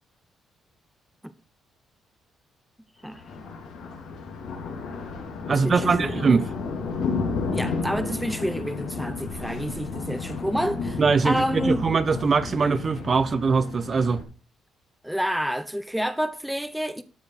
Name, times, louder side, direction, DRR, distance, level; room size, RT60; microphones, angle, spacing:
voice 1, 3.0-3.5 5.5-6.4 7.5-11.9 15.0-17.0, equal, ahead, 0.9 m, -29 dB
Thunder, 3.1-14.2, left 4 dB, 85° left, 3.2 m, -32 dB
voice 2, 5.5-6.5 11.0-14.2, right 5 dB, 40° right, 0.9 m, -22 dB
13.0 x 5.2 x 5.9 m
cardioid pair, 90°, 0 cm